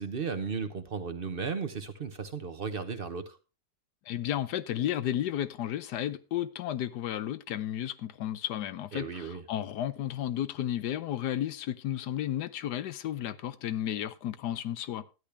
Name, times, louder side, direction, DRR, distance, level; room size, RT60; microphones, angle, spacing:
voice 1, 0.0-3.4 8.9-9.4, right 5 dB, 45° right, 0.9 m, -35 dB
voice 2, 4.1-15.1, left 11 dB, 80° left, 1.3 m, -33 dB
12.5 x 10.0 x 3.3 m
omnidirectional pair, 1.8 m